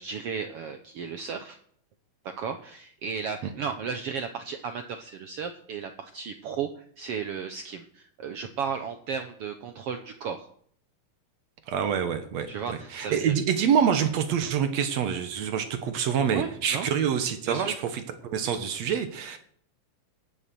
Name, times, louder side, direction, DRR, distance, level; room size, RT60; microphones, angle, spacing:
voice 1, 0.0-1.6 2.2-10.5 12.5-13.4 16.3-16.9 17.5-17.8, right 6 dB, 80° right, 7 dB, 1.3 m, -34 dB
voice 2, 11.7-12.5 12.9-19.4, right 8 dB, 65° right, 9 dB, 2.1 m, -26 dB
17.5 x 7.3 x 6.8 m, 0.62 s
omnidirectional pair, 3.7 m